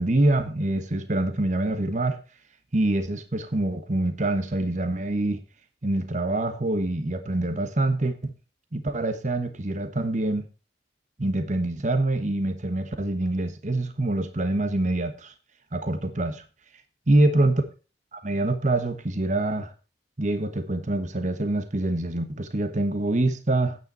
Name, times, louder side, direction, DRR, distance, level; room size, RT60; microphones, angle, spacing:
voice 1, 0.0-2.2 2.7-5.4 5.8-8.3 8.7-10.4 11.2-15.3 15.7-16.4 17.1-17.6 18.1-19.7 20.2-23.8, right 2 dB, 40° right, 1.2 m, -25 dB
9.5 x 9.1 x 4.3 m
head